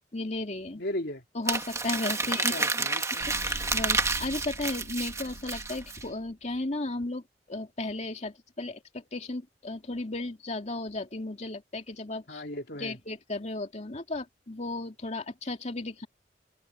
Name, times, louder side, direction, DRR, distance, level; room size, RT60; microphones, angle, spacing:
voice 1, 0.1-0.8 1.3-2.9 3.4-12.4 12.8-16.1, left 2 dB, 40° left, 2.5 m, -35 dB
voice 2, 0.8-1.2 2.2-3.3 12.3-13.0, left 1 dB, 65° left, 3.1 m, -37 dB
Crumpling crinkling, 1.5-6.0, right 3 dB, 15° right, 1.6 m, -30 dB
sound 1, 3.2-6.3, equal, 65° right, 3.0 m, -43 dB
open air
head